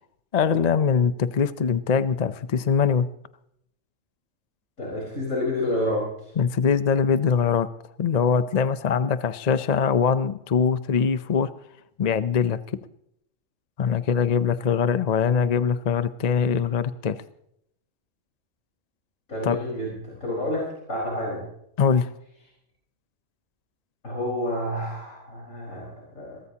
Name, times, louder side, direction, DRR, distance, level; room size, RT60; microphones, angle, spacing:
voice 1, 0.3-3.1 6.4-7.7 8.0-11.5 12.0-12.6 13.8-17.2 19.4-19.6 21.8-22.1, left 6 dB, 40° left, 13 dB, 0.6 m, -22 dB
voice 2, 4.8-6.3 19.3-21.4 24.0-26.4, left 1 dB, 85° left, -4 dB, 5.3 m, -29 dB
22.0 x 18.5 x 2.9 m, 0.74 s
omnidirectional pair, 1.3 m